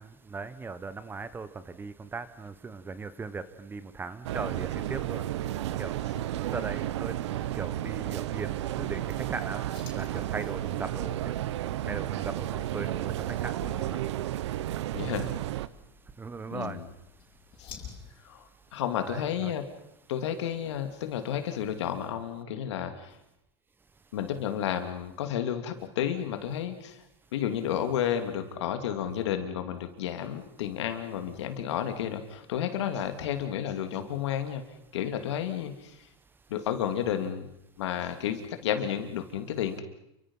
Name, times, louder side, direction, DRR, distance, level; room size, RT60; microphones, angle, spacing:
voice 1, 0.0-5.3 5.8-6.0 6.5-9.6 9.9-11.4 11.9-14.0 16.2-16.8 19.0-19.5, right 4 dB, 15° right, 14 dB, 1.2 m, -38 dB
sound 1, 4.2-15.7, right 13 dB, 85° right, 1.0 m, -32 dB
sound 2, 8.1-18.0, left 7 dB, 35° left, 6.2 m, -52 dB
voice 2, 14.9-15.3 16.5-16.9 17.6-17.7 18.2-19.7 20.1-23.2 24.1-27.0 27.3-34.6 34.9-36.1 36.5-37.5 37.8-39.8, left 9 dB, 85° left, 7 dB, 2.9 m, -31 dB
29.0 x 24.5 x 5.7 m, 0.84 s
supercardioid pair, 140°, 14 cm